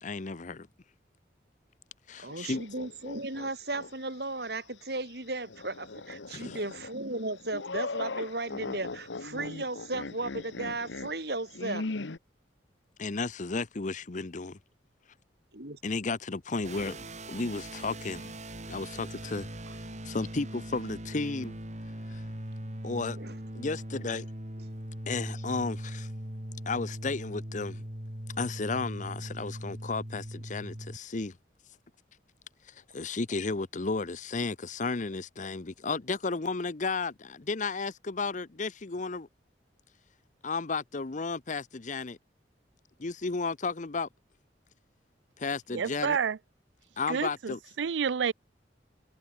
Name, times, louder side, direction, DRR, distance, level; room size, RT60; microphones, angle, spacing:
voice 1, 0.0-0.7 2.1-2.6 6.3-6.6 13.0-14.6 15.8-17.0 17.3-18.3 18.7-19.5 20.0-21.6 22.1-22.2 22.8-23.2 23.5-24.3 25.1-26.1 26.7-27.8 28.4-31.4 32.7-39.3 40.4-42.2 43.0-44.1 45.4-46.2 47.0-47.6, left 3 dB, 45° left, 0.8 m, -33 dB
voice 2, 2.2-11.9 15.5-15.8 19.7-19.8 23.2-23.3, right 2 dB, 60° right, 5.7 m, -35 dB
sound 1, 2.3-3.9 4.3-4.4 5.5-12.2, left 3 dB, 90° left, 1.1 m, -39 dB
sound 2, 16.6-31.0, right 1 dB, 40° right, 5.5 m, -40 dB
voice 3, 45.7-46.4 47.1-48.3, right 6 dB, 90° right, 0.5 m, -29 dB
head